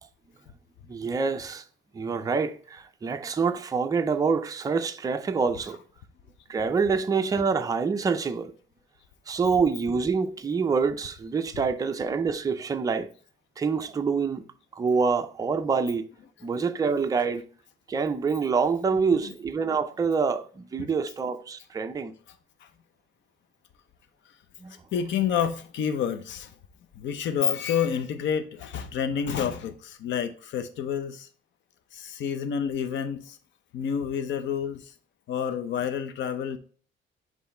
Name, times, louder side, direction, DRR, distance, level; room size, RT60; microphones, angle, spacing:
voice 1, 0.9-1.6 1.9-5.8 6.5-8.5 9.3-13.1 13.6-14.5 14.7-16.1 16.4-17.5 17.9-22.1 24.6-24.7, right 5 dB, 15° right, 0.4 m, -26 dB
voice 2, 18.9-19.3 22.3-22.4 22.6-22.7 24.9-26.5 26.9-31.3 31.9-33.4 33.7-34.9 35.3-36.6, left 8 dB, 65° left, 0.7 m, -29 dB
7.6 x 3.1 x 4.3 m
cardioid pair, 165°, 20 cm